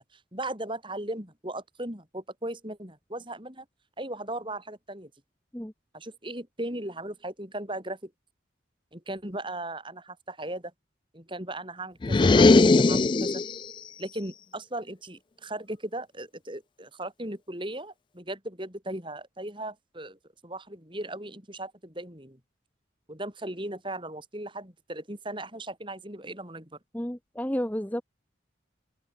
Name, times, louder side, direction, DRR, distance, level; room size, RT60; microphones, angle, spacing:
voice 1, 0.0-3.6 4.0-5.1 5.9-8.1 8.9-10.7 11.1-13.4 14.0-22.4 23.1-26.7, right 1 dB, 25° right, 6.2 m, -37 dB
sound 1, 12.0-13.7, left 3 dB, 25° left, 0.3 m, -19 dB
voice 2, 26.9-28.0, equal, 10° left, 0.8 m, -31 dB
open air
head